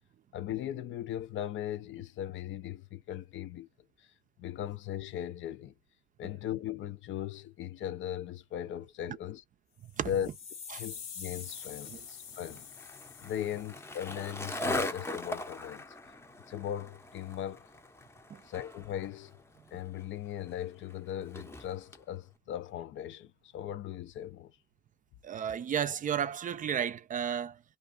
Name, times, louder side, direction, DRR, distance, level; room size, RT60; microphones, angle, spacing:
voice 1, 0.3-3.7 4.0-4.1 4.4-5.7 6.2-9.4 10.0-10.3 10.8-12.7 13.2-15.8 16.5-17.7 18.4-19.4 19.7-24.6, left 10 dB, 75° left, 0.5 m, -38 dB
sound 1, 9.9-14.1, left 6 dB, 90° left, 1.0 m, -46 dB
Skateboard, 11.5-22.0, left 1 dB, 15° left, 0.6 m, -41 dB
voice 2, 25.2-27.6, right 8 dB, 40° right, 0.4 m, -33 dB
2.5 x 2.4 x 3.7 m
cardioid pair, 90°, 20 cm